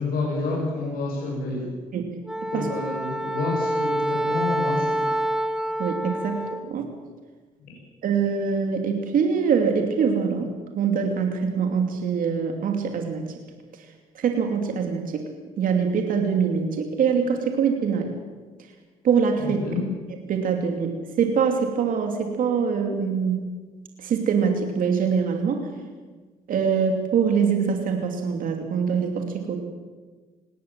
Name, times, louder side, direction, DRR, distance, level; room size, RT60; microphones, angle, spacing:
voice 1, 0.0-1.7 2.5-5.0 19.6-19.8, left 3 dB, 70° left, -3 dB, 7.5 m, -28 dB
Wind instrument woodwind instrument, 2.3-6.7, right 1 dB, 5° right, 1.3 m, -27 dB
voice 2, 5.8-6.9 8.0-10.5 10.7-13.2 14.1-15.2 15.6-18.1 19.0-19.6 20.2-20.9 21.2-23.4 24.0-25.7 26.5-29.6, right 6 dB, 65° right, 4 dB, 2.9 m, -24 dB
20.5 x 17.5 x 7.6 m, 1.4 s
supercardioid pair, 75°, 15 cm